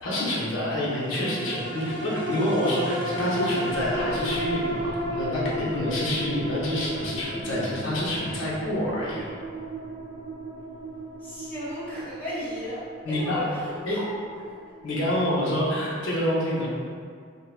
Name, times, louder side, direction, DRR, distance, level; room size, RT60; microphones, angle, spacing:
voice 1, 0.0-9.2 13.0-13.4 13.9-14.0 14.8-16.7, left 1 dB, 80° left, -6 dB, 0.6 m, -27 dB
sound 1, 0.9-15.5 16.0-16.1, right 1 dB, 65° right, 0.5 m, -33 dB
voice 2, 11.2-14.5, left 1 dB, 10° left, -11 dB, 0.9 m, -35 dB
3.4 x 2.0 x 2.2 m, 2.1 s
head